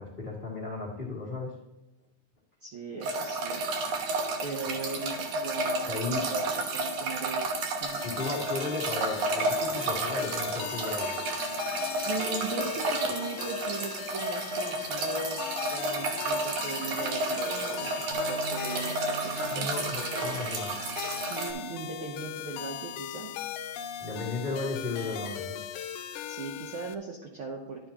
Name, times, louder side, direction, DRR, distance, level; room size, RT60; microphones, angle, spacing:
voice 1, 0.0-1.5 5.8-6.2 8.0-11.1 19.5-20.8 24.0-25.6, left 3 dB, 20° left, -5 dB, 1.3 m, -35 dB
voice 2, 2.6-3.6 4.4-8.0 12.0-15.4 15.7-19.7 21.3-23.3 26.3-27.9, right 4 dB, 85° right, -1 dB, 1.1 m, -39 dB
sound 1, 3.0-21.5, right 2 dB, 70° right, 2.5 m, -31 dB
sound 2, 7.8-26.9, left 9 dB, 80° left, 1.9 m, -39 dB
Bass guitar, 18.1-24.4, right 2 dB, 50° right, 1.9 m, -47 dB
11.5 x 9.4 x 2.9 m, 1.0 s
omnidirectional pair, 3.7 m